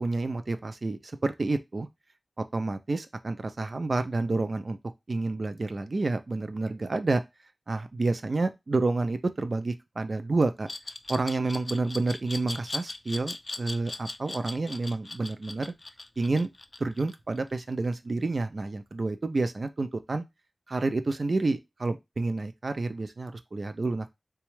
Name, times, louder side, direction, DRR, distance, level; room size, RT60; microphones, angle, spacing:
voice 1, 0.0-1.9 2.5-4.8 5.1-7.2 7.7-10.7 11.1-15.7 16.2-16.5 16.8-20.2 20.7-24.1, right 3 dB, 60° right, 0.4 m, -29 dB
Glass, 10.7-17.5, left 2 dB, 45° left, 0.3 m, -38 dB
3.9 x 2.3 x 3.1 m
wide cardioid pair, 75°, 0 cm